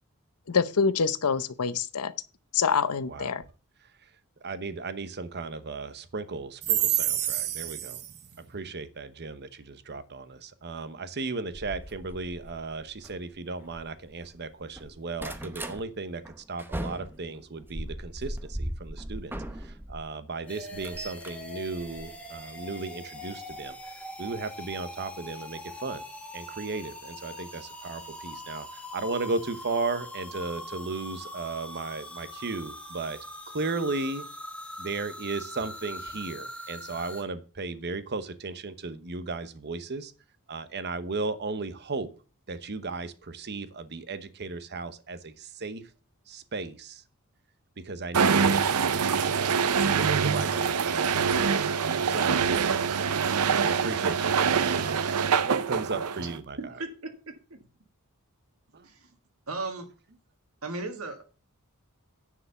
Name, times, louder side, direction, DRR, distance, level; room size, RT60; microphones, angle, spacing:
voice 1, 0.5-2.1 2.5-3.4, left 5 dB, 80° left, 0.7 m, -26 dB
voice 2, 4.4-16.2 16.5-23.8 24.2-26.0 26.3-33.2 33.5-34.2 34.8-40.1 40.5-42.1 42.5-45.8 46.3-47.0 47.8-48.7 49.8-51.7 52.0-53.2 53.6-55.1 55.4-56.6 58.7-58.9, right 4 dB, 50° right, 0.9 m, -34 dB
sound 1, 11.5-14.3 14.6-15.8 16.2-20.0 20.4-22.6 23.7-23.9 24.3-24.4 24.7-24.8, right 1 dB, 10° right, 0.8 m, -39 dB
sound 2, 20.5-37.2, left 1 dB, 5° left, 1.3 m, -42 dB
sound 3, 48.1-56.4, right 6 dB, 90° right, 0.6 m, -25 dB
voice 3, 56.6-57.1 57.5-57.6 58.8-59.1 59.5-59.9 60.6-61.2, right 3 dB, 70° right, 1.9 m, -36 dB
10.0 x 4.9 x 6.9 m
head